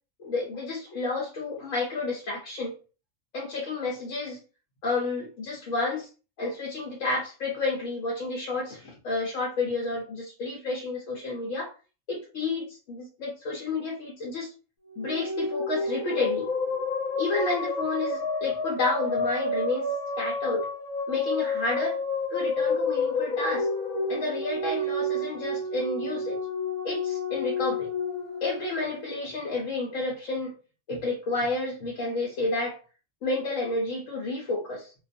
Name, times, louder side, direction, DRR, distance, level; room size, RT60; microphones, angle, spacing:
voice 1, 0.2-2.7 3.3-4.4 4.8-6.1 6.4-11.7 12.1-14.5 15.0-16.5 17.2-19.9 20.2-20.7 21.1-22.0 22.3-23.7 24.1-26.4 26.8-27.9 28.4-30.5 30.9-32.8 33.2-34.9, left 3 dB, 75° left, -3 dB, 1.1 m, -30 dB
sound 1, 14.9-29.3, left 2 dB, 40° left, 0.7 m, -30 dB
2.4 x 2.3 x 2.5 m, 0.35 s
omnidirectional pair, 1.3 m